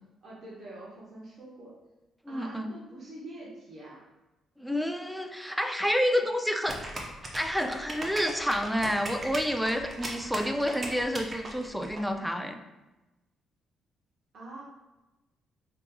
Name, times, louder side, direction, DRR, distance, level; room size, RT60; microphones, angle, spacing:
voice 1, 0.2-1.7 2.3-4.0 14.3-14.6, right 1 dB, 55° right, -5 dB, 1.0 m, -45 dB
voice 2, 2.3-2.7 4.6-6.8 7.3-12.6, equal, ahead, 6 dB, 0.3 m, -29 dB
sound 1, 6.7-12.0, right 2 dB, 35° right, 0.7 m, -38 dB
5.1 x 2.9 x 2.2 m, 1.0 s
cardioid pair, 90°, 0 cm